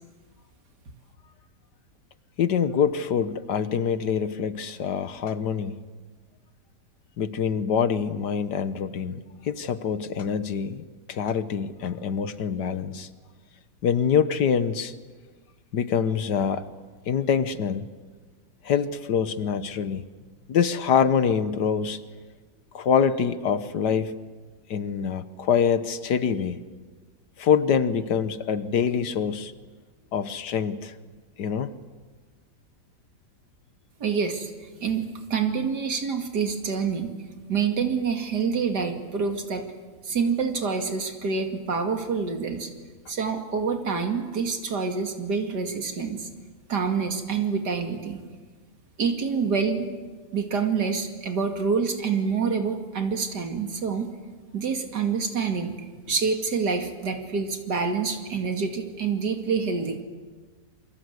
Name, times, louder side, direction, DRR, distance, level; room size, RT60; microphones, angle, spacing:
voice 1, 2.4-5.8 7.2-13.1 13.8-14.9 15.7-16.6 17.1-17.9 18.6-20.1 20.5-22.0 22.7-24.1 24.7-26.6 27.4-29.5 30.1-30.9 31.4-31.7, left 7 dB, 90° left, 13 dB, 1.8 m, -25 dB
voice 2, 34.0-37.1 37.5-39.7 40.0-42.7 43.1-46.3 46.7-48.2 49.0-49.9 50.3-54.1 54.5-55.7 56.1-60.0, right 5 dB, 85° right, 5 dB, 2.9 m, -27 dB
28.0 x 24.0 x 8.1 m, 1.4 s
omnidirectional pair, 1.8 m